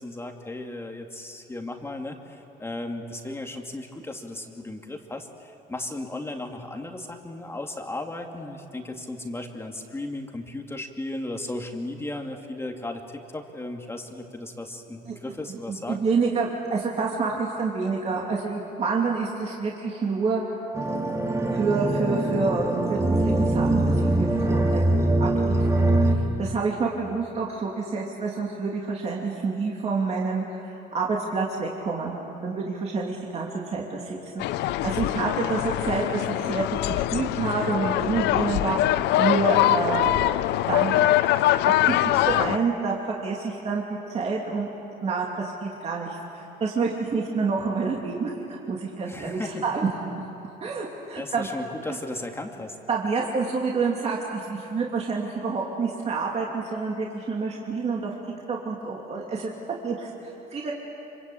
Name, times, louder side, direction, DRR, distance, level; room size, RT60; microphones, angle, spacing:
voice 1, 0.0-16.0 49.1-49.6 51.1-52.8, left 2 dB, 15° left, 3 dB, 2.3 m, -35 dB
voice 2, 15.5-20.6 21.5-32.2 32.4-40.3 40.7-41.2 41.9-42.9 43.2-44.7 45.0-49.9 50.6-51.5 51.9-52.0 52.9-58.1 58.5-59.5 59.8-60.7, right 4 dB, 40° right, -2 dB, 2.9 m, -28 dB
sound 1, 20.7-26.2, right 2 dB, 15° right, 2.3 m, -23 dB
sound 2, 34.4-42.6, left 15 dB, 85° left, 0.6 m, -23 dB
26.0 x 24.5 x 8.6 m, 3.0 s
cardioid pair, 110°, 17 cm